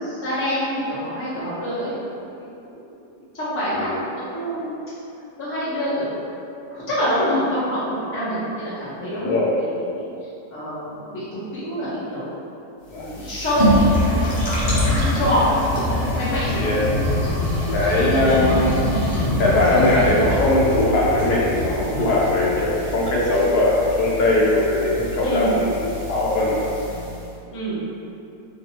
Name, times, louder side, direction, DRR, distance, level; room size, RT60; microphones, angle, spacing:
voice 1, 0.0-2.3 3.3-4.7 5.4-6.2 6.7-9.7 9.9-10.0 10.5-11.2 11.5-12.2 12.9-14.7 15.1-17.4 18.0-18.6 25.2-25.6 27.5-27.8, equal, 15° left, -12 dB, 0.5 m, -26 dB
voice 2, 9.1-9.5 12.9-13.1 16.5-16.8 17.7-18.9 19.4-25.8 26.1-26.6, left 2 dB, 75° left, -5 dB, 1.1 m, -20 dB
sound 1, 12.9-27.2, left 1 dB, 60° left, 0.5 m, -24 dB
2.8 x 2.7 x 2.8 m, 2.7 s
omnidirectional pair, 1.8 m